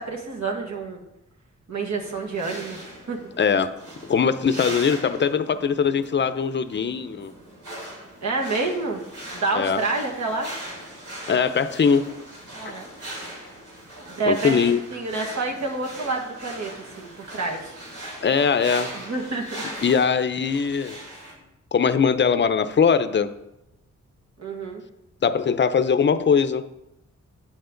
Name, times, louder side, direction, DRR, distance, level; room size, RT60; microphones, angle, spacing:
voice 1, 0.1-1.0 1.7-3.2 8.2-9.0 9.3-10.5 12.5-12.9 14.1-14.6 14.9-17.7 18.9-19.6 24.4-24.8, right 3 dB, 70° right, 1 dB, 1.7 m, -28 dB
sound 1, 2.0-21.3, right 1 dB, 85° right, 3.6 m, -40 dB
voice 2, 3.4-3.7 4.1-7.3 9.5-9.8 11.3-12.1 14.3-14.8 18.2-18.9 19.8-21.0 21.7-23.3 25.2-26.7, left 6 dB, 40° left, 11 dB, 0.6 m, -21 dB
8.6 x 8.0 x 3.9 m, 0.88 s
cardioid pair, 90°, 29 cm